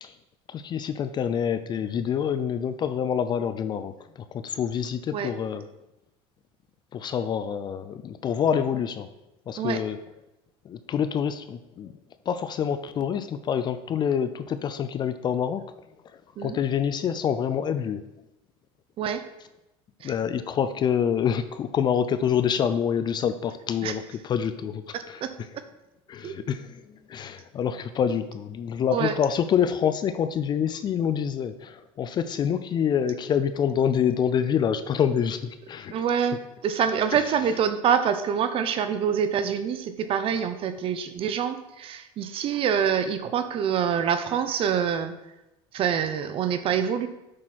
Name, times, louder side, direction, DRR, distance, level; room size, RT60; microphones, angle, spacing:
voice 1, 0.5-3.9 4.4-5.6 6.9-9.1 9.5-10.0 10.7-11.9 12.3-15.6 16.4-18.0 20.0-24.8 26.1-26.6 27.1-35.9, left 8 dB, 35° left, 11 dB, 0.4 m, -26 dB
voice 2, 24.9-25.6 26.2-26.3 28.9-29.2 35.9-45.1 45.7-47.1, right 8 dB, 45° right, 10 dB, 0.7 m, -26 dB
7.5 x 6.2 x 4.2 m, 0.93 s
supercardioid pair, 125°, 13 cm